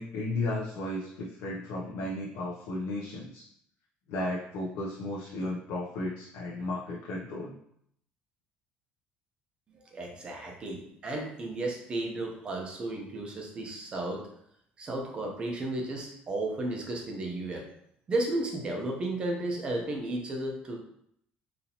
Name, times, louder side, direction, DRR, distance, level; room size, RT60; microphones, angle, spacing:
voice 1, 0.0-3.4 4.1-7.6, left 2 dB, 75° left, -3 dB, 0.6 m, -34 dB
voice 2, 9.9-14.2 14.8-17.7 18.1-20.8, right 2 dB, 25° right, 1 dB, 0.7 m, -33 dB
4.1 x 2.8 x 2.8 m, 0.71 s
cardioid pair, 170°, 4 cm